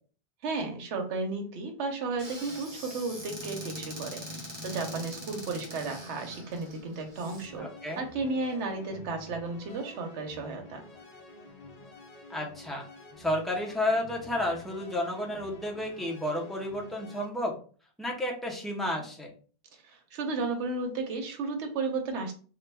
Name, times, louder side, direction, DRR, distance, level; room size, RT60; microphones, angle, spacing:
voice 1, 0.4-7.7 8.0-10.8 19.8-22.3, right 3 dB, 85° right, 4 dB, 1.0 m, -33 dB
Squeak / Cupboard open or close, 2.2-7.5, equal, 25° right, 0.9 m, -42 dB
sound 1, 7.2-17.3, left 3 dB, 50° left, 0.5 m, -50 dB
voice 2, 7.6-8.0 12.3-12.8 13.2-17.5 18.0-19.3, left 1 dB, ahead, -2 dB, 0.5 m, -31 dB
3.1 x 2.3 x 3.3 m, 0.40 s
omnidirectional pair, 1.1 m